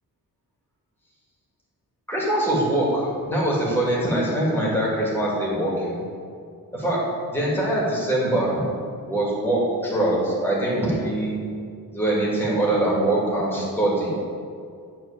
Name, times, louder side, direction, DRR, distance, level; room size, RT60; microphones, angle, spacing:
voice 1, 2.1-6.0 6.7-8.6 9.1-11.3 11.9-14.1, right 1 dB, 5° left, -6 dB, 2.5 m, -23 dB
9.3 x 4.3 x 7.4 m, 2.3 s
wide cardioid pair, 160°, 36 cm